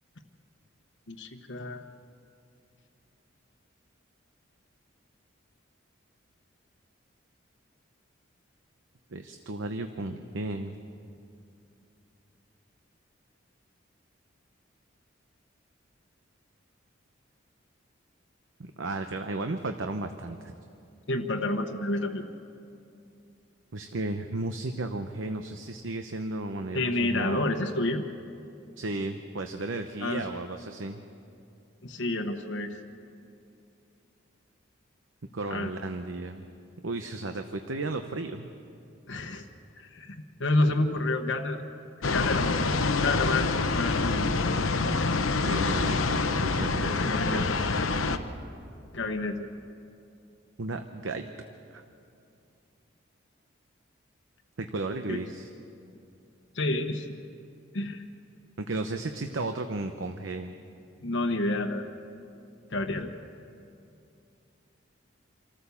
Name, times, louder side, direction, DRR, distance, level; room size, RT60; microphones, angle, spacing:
voice 1, 1.1-1.9 21.1-22.2 26.7-28.0 30.0-30.4 31.8-32.8 35.5-35.7 39.1-39.5 39.7-41.6 42.1-42.7 43.0-44.3 46.8-47.6 48.9-49.5 55.1-55.2 56.5-57.1 57.7-58.0 61.0-62.0 62.7-63.1, left 2 dB, 65° left, 4 dB, 1.1 m, -29 dB
voice 2, 9.1-10.8 18.6-20.5 23.7-27.4 28.8-31.0 35.3-36.4 36.8-38.5 45.4-47.5 50.6-51.3 51.7-51.8 54.6-55.5 58.6-60.6, right 2 dB, 75° right, 7 dB, 0.8 m, -34 dB
sound 1, 42.0-48.2, left 3 dB, 90° left, 0.9 m, -26 dB
26.5 x 14.0 x 7.0 m, 2.6 s
head